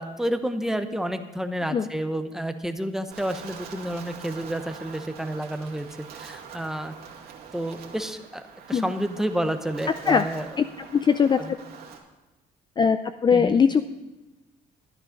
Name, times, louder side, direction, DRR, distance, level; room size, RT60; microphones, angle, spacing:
voice 1, 0.0-6.9 7.5-8.4 8.7-10.5 11.4-11.5 13.3-13.5, right 1 dB, 5° right, 7 dB, 0.9 m, -30 dB
Wind, 3.1-12.0, right 7 dB, 70° right, 2.2 m, -44 dB
voice 2, 10.9-11.6 12.8-13.0 13.2-13.8, left 6 dB, 25° left, 11 dB, 0.4 m, -20 dB
13.0 x 10.5 x 5.2 m, 1.1 s
cardioid pair, 110°, 17 cm